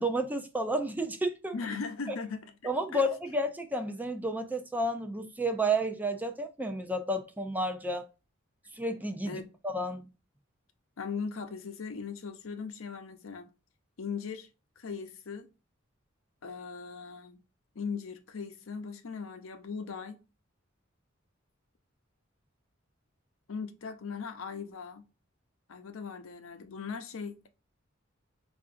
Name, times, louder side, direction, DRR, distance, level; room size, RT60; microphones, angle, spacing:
voice 1, 0.0-1.5 2.6-8.1 8.7-10.1, right 1 dB, 10° right, 0.4 m, -31 dB
voice 2, 1.5-3.0 9.3-9.5 11.0-13.5 14.0-14.5 14.8-15.5 16.4-17.4 17.7-20.2 23.5-25.1 25.7-27.5, left 5 dB, 85° left, 0.6 m, -39 dB
4.6 x 2.5 x 2.5 m
head